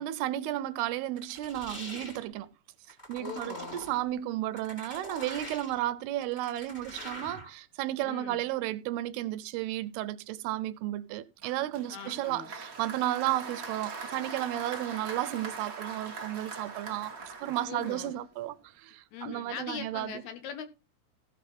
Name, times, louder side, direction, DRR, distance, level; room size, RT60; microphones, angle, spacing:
voice 1, 0.0-2.5 3.1-17.1 17.4-20.2, right 14 dB, 80° right, 2.6 m, -33 dB
sound 1, 1.2-2.2 2.9-4.0 4.6-5.8 6.2-7.5, equal, 15° left, 2.2 m, -44 dB
voice 2, 3.2-3.9 8.0-8.5 11.9-12.5 16.9-17.0 17.7-18.1 19.1-20.7, left 7 dB, 75° left, 3.3 m, -41 dB
Applause, 11.4-18.5, right 4 dB, 40° right, 1.2 m, -42 dB
15.0 x 6.6 x 4.2 m
omnidirectional pair, 4.8 m